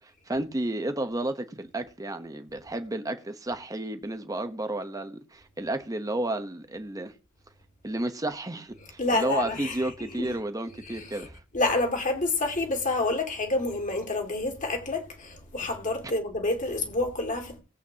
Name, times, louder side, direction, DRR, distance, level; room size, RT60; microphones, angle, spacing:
voice 1, 0.0-7.1 7.8-11.4, right 1 dB, 15° right, 1.0 m, -32 dB
voice 2, 9.0-10.3 10.8-11.3 11.5-17.6, left 2 dB, 40° left, 2.3 m, -28 dB
19.0 x 8.1 x 2.9 m
head